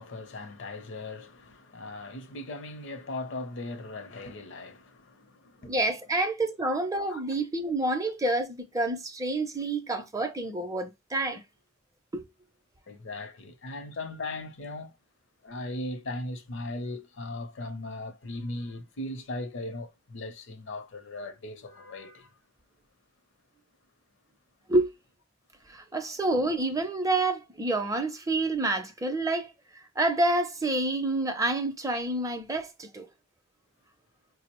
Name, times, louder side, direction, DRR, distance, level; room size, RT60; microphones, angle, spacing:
voice 1, 0.0-5.8 6.1-6.3 7.1-7.2 12.9-14.9 15.4-22.3, left 2 dB, 60° left, 0.6 m, -38 dB
voice 2, 5.6-11.4 12.1-12.3 24.7-24.9 25.7-33.1, right 2 dB, 15° right, 0.5 m, -28 dB
4.7 x 2.0 x 2.9 m
head